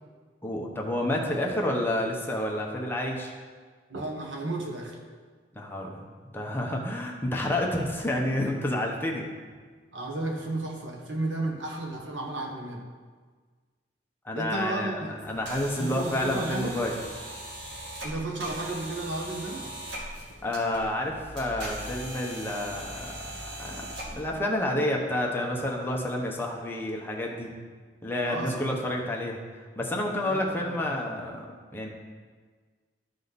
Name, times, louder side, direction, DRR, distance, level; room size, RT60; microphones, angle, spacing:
voice 1, 0.4-3.3 5.5-6.0 6.3-9.3 14.2-17.0 20.4-23.1 23.4-23.8 24.1-27.5 28.0-29.4 29.8-31.4 31.7-31.9, left 1 dB, 10° left, -1 dB, 1.0 m, -29 dB
voice 2, 3.9-5.0 9.9-12.8 14.3-15.2 15.8-16.8 18.0-19.7 28.3-28.7 30.2-30.8, right 2 dB, 90° right, 1 dB, 1.4 m, -33 dB
sound 1, 15.2-24.4, right 1 dB, 70° right, 2.1 m, -40 dB
12.5 x 5.1 x 4.1 m, 1.5 s
head